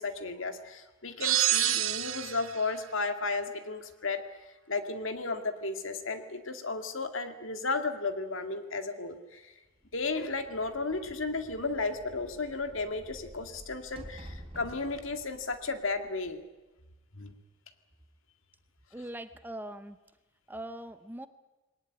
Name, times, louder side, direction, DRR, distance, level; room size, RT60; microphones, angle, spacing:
voice 1, 0.0-4.2 4.7-9.5 9.9-16.4 17.2-17.3, left 3 dB, 65° left, 7 dB, 2.1 m, -34 dB
sound 1, 1.2-2.6, right 14 dB, 75° right, 1.2 m, -27 dB
sound 2, 9.8-16.6, equal, 30° right, 3.4 m, -51 dB
voice 2, 18.9-20.0 20.5-21.3, right 1 dB, 10° right, 11 dB, 0.7 m, -41 dB
21.5 x 19.0 x 9.7 m, 1.1 s
head